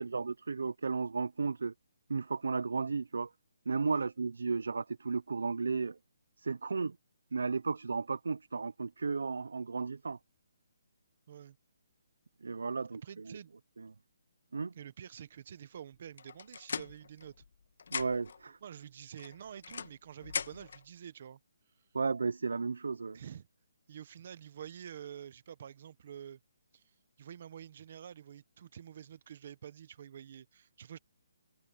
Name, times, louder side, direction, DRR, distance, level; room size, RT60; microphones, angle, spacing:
voice 1, 0.0-1.7 2.1-3.3 3.7-6.0 6.4-7.0 7.3-10.2 12.4-13.4 13.8-13.9 14.5-14.7 17.9-18.6 21.9-23.2, right 4 dB, 85° right, 0.4 m, -34 dB
voice 2, 13.0-13.5 14.7-17.4 18.6-21.4 23.1-23.5 23.9-26.4 26.7-26.8 27.2-31.0, right 9 dB, 30° right, 1.1 m, -48 dB
sound 1, 16.2-17.5 17.8-18.4 19.2-20.8, left 5 dB, 50° left, 1.3 m, -40 dB
hypercardioid pair, 180°, 0 cm